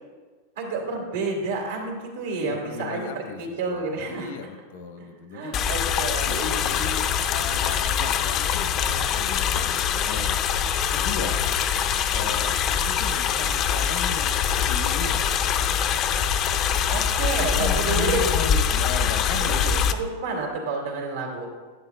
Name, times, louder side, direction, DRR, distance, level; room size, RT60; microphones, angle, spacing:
voice 1, 0.6-4.3 5.0-6.4 16.9-18.2 19.4-21.5, right 3 dB, 85° right, 0 dB, 2.2 m, -30 dB
voice 2, 2.4-5.5 6.2-10.4 10.9-11.6 12.1-15.2 17.4-19.6, left 5 dB, 75° left, 7 dB, 1.0 m, -36 dB
sound 1, 5.5-19.9, left 8 dB, 35° left, 0.5 m, -24 dB
10.5 x 9.2 x 2.2 m, 1.4 s
supercardioid pair, 145°, 0 cm